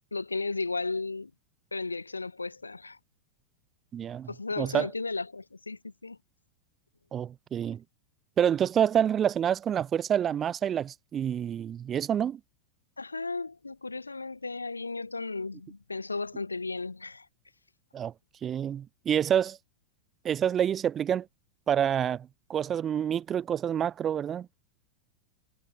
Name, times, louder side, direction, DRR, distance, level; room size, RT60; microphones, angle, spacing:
voice 1, 0.1-1.3 1.7-3.0 4.3-6.2 13.0-17.3, left 3 dB, 80° left, 0.7 m, -34 dB
voice 2, 3.9-4.3 4.6-4.9 7.1-7.8 8.4-12.4 17.9-18.1 18.4-19.6 20.2-21.3 21.7-24.5, right 9 dB, 25° right, 0.7 m, -27 dB
figure-of-eight pair, 90°, 0 cm